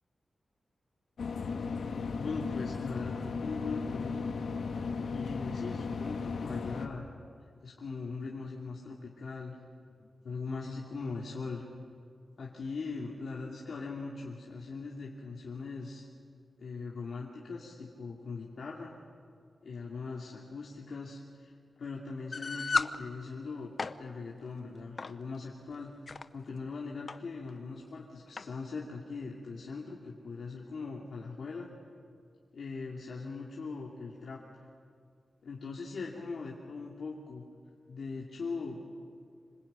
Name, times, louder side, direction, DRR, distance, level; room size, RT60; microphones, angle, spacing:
sound 1, 1.2-6.9, left 4 dB, 85° left, 1.7 m, -36 dB
voice 1, 2.2-4.4 5.1-7.1 7.6-9.6 10.0-11.7 12.4-16.0 16.6-18.9 19.6-21.5 21.8-25.9 26.3-31.7 32.5-34.7 35.4-37.4 37.9-38.8, left 4 dB, 70° left, -3 dB, 2.6 m, -40 dB
sound 2, 22.3-23.0 23.6-24.0 25.0-25.2 25.9-26.2 27.1-27.2 27.5-27.6 28.4-28.5, left 4 dB, 40° left, 0.7 m, -32 dB
26.5 x 25.0 x 8.9 m, 2.2 s
wide cardioid pair, 180°, 0 cm